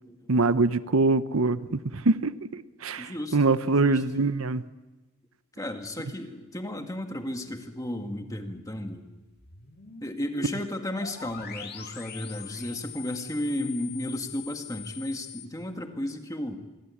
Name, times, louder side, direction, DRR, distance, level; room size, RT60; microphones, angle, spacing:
voice 1, 0.3-4.6, right 3 dB, 70° right, 14 dB, 0.8 m, -24 dB
voice 2, 3.0-3.4 3.6-4.0 5.6-9.1 10.0-16.6, left 1 dB, 15° left, 5 dB, 1.9 m, -34 dB
sound 1, 9.4-15.5, left 7 dB, 45° left, 2.2 m, -43 dB
27.0 x 22.5 x 8.6 m, 1.1 s
head